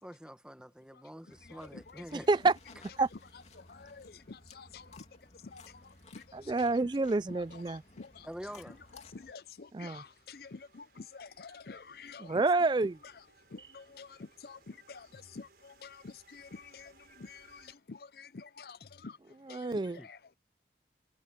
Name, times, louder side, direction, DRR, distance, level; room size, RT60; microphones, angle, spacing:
voice 1, 0.0-2.3 8.2-8.8 19.9-20.1, equal, 5° right, 1.3 m, -46 dB
voice 2, 0.9-2.3 3.1-6.6 7.3-8.3 8.7-12.4 13.0-13.2 13.5-20.3, left 4 dB, 55° left, 0.6 m, -50 dB
sound 1, 1.3-9.3, left 3 dB, 40° left, 3.0 m, -57 dB
voice 3, 2.1-2.5 3.0-3.1 6.3-7.8 9.7-10.0 12.2-12.9 19.5-20.0, right 3 dB, 25° right, 0.3 m, -28 dB
sound 2, 2.6-17.8, right 4 dB, 60° right, 5.0 m, -67 dB
head